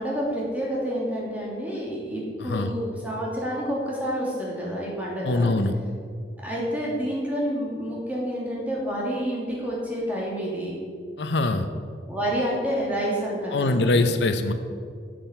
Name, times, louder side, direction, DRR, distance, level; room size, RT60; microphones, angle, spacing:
voice 1, 0.0-5.5 6.4-10.8 12.1-14.1, equal, 10° right, -5 dB, 2.7 m, -29 dB
voice 2, 2.4-2.7 5.2-5.7 11.2-11.7 13.5-14.5, left 2 dB, 80° left, 8 dB, 0.7 m, -23 dB
8.8 x 7.7 x 6.8 m, 2.1 s
head